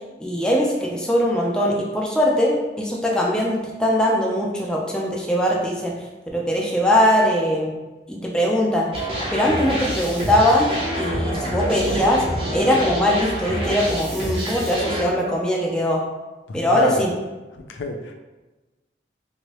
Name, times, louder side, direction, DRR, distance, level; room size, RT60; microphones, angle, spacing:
voice 1, 0.2-5.9 6.3-7.7 8.1-12.2 12.5-16.0 16.5-17.1, equal, 5° left, -3 dB, 0.4 m, -21 dB
sound 1, 8.9-15.0, right 1 dB, 30° right, 0.7 m, -27 dB
voice 2, 16.5-17.1 17.7-18.1, left 3 dB, 85° left, 4 dB, 0.4 m, -26 dB
2.9 x 2.7 x 3.0 m, 1.1 s
head